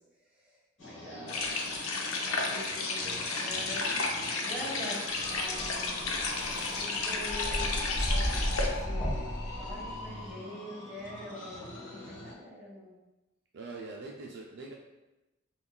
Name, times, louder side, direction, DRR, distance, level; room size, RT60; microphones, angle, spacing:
voice 1, 0.3-1.6 2.2-6.2 6.6-9.3 9.6-13.0, left 1 dB, 5° right, -8 dB, 1.2 m, -44 dB
sound 1, 0.8-12.3, left 3 dB, 65° left, 1.1 m, -44 dB
sound 2, 1.3-8.7, left 3 dB, 90° left, 0.5 m, -33 dB
voice 2, 2.3-2.8 13.5-14.7, right 3 dB, 55° right, -1 dB, 0.4 m, -44 dB
sound 3, 5.2-10.3, equal, 20° left, 0.7 m, -34 dB
5.3 x 2.3 x 2.2 m, 1.0 s
head